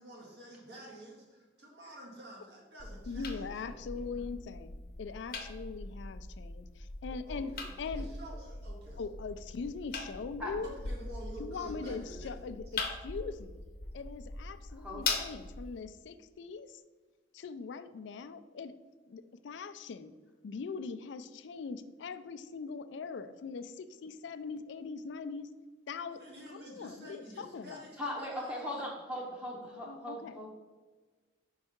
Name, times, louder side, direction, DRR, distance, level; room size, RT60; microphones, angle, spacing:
voice 1, 0.0-3.5 7.3-9.0 10.5-12.4 26.1-28.7, right 1 dB, 60° right, -2 dB, 1.6 m, -49 dB
sound 1, 2.8-15.8, left 3 dB, 50° left, 0.7 m, -41 dB
voice 2, 3.1-8.1 9.0-10.7 11.4-13.6 13.9-16.8 17.3-18.7 19.1-20.1 20.4-25.5 25.9-26.2 26.5-27.8 29.9-30.4, left 4 dB, 75° left, 12 dB, 0.4 m, -41 dB
voice 3, 3.7-4.0 10.4-10.6 14.8-15.0 28.0-30.5, left 1 dB, 5° right, -2 dB, 0.8 m, -39 dB
5.3 x 4.7 x 4.3 m, 1.3 s
head